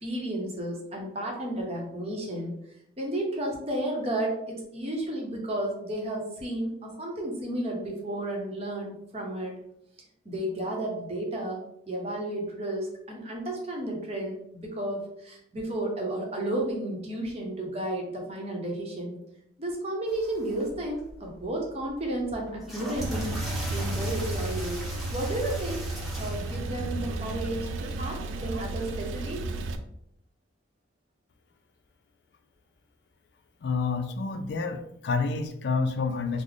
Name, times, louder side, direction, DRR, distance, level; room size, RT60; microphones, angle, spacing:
voice 1, 0.0-2.6 3.0-9.5 10.2-19.2 19.6-23.4 23.7-24.8 25.1-25.9 26.2-29.5, right 1 dB, 30° right, -1 dB, 0.8 m, -32 dB
sound 1, 20.1-29.7, equal, ahead, 0.6 m, -43 dB
Male speech man speaking / Car / Idling, 23.0-29.8, right 2 dB, 90° right, 0.3 m, -33 dB
voice 2, 33.6-36.4, left 4 dB, 60° left, 7 dB, 0.3 m, -28 dB
3.2 x 2.0 x 3.8 m, 0.76 s
head